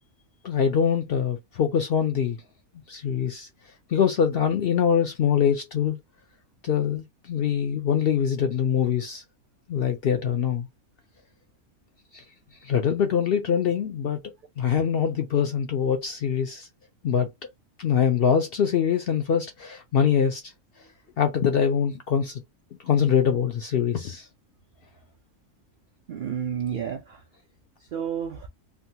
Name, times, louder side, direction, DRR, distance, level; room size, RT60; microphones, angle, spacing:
voice 1, 0.4-2.4 2.9-3.5 3.9-6.0 6.6-9.2 9.7-10.7 12.1-12.2 12.6-14.2 14.6-16.7 17.0-17.3 17.8-20.4 21.2-22.4 22.8-24.3, left 8 dB, 65° left, 0.6 m, -23 dB
voice 2, 26.1-27.2 27.8-28.5, right 8 dB, 85° right, 0.4 m, -31 dB
3.5 x 2.2 x 2.7 m
omnidirectional pair, 1.4 m